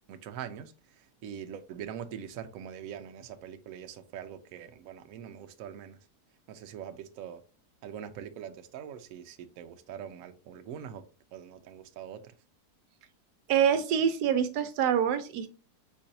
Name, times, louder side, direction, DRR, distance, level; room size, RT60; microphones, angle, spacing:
voice 1, 0.1-6.0 6.5-7.4 7.8-11.1 11.3-12.3, right 9 dB, 70° right, 0.9 m, -43 dB
voice 2, 13.5-15.5, right 8 dB, 85° right, 1.2 m, -25 dB
4.6 x 4.2 x 2.6 m
omnidirectional pair, 1.7 m